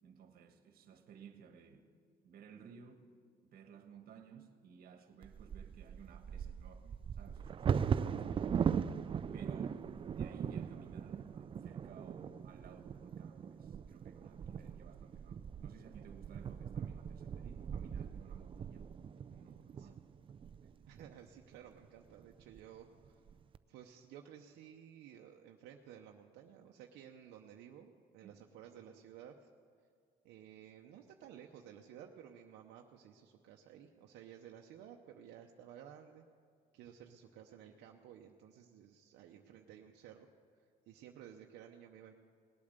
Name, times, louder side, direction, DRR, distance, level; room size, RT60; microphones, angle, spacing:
voice 1, 0.0-1.9 2.2-3.0 3.4-9.1 9.3-9.8 10.1-18.9 19.2-20.1 28.2-28.3, right 6 dB, 60° right, 1.4 m, -57 dB
Bird vocalization bird call bird song / Wind / Thunder, 5.2-21.1 21.8-21.9 22.2-22.6 23.0-23.6, right 7 dB, 30° right, 0.4 m, -39 dB
voice 2, 20.9-23.2 23.7-29.5 30.2-36.3 36.7-40.3 40.9-42.1, right 9 dB, 85° right, 0.8 m, -55 dB
19.0 x 8.6 x 6.7 m
cardioid pair, 110°, 17 cm